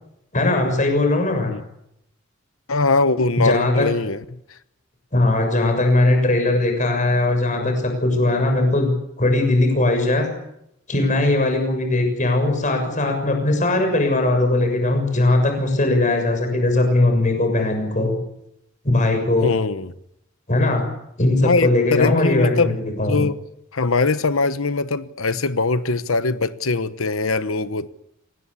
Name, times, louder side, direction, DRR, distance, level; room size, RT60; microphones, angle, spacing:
voice 1, 0.3-1.5 3.4-3.9 5.1-8.9 9.2-10.3 10.9-18.1 18.8-19.5 20.5-20.9 21.2-22.7 23.0-23.2, left 2 dB, 35° left, 6.7 m, -19 dB
voice 2, 2.7-4.6 19.4-19.9 21.4-22.8 23.1-23.4 23.7-27.9, left 3 dB, 85° left, 1.0 m, -22 dB
26.5 x 19.0 x 8.5 m
head